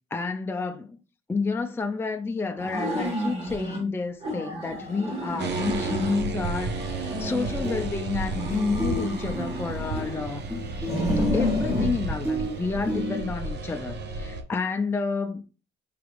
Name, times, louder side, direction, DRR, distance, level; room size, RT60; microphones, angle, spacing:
voice 1, 0.1-1.0 1.3-10.9 11.3-15.4, left 4 dB, 10° left, 0.4 m, -30 dB
sound 1, 2.6-3.8 4.2-6.3 6.7-7.9 8.3-10.3 10.8-11.9, left 1 dB, 30° right, 1.5 m, -31 dB
sound 2, 5.4-14.4, right 3 dB, 60° right, 0.7 m, -32 dB
sound 3, 7.3-7.4 7.6-8.2 8.5-13.2, left 1 dB, 10° right, 1.4 m, -32 dB
4.8 x 3.1 x 2.5 m
cardioid pair, 90°, 20 cm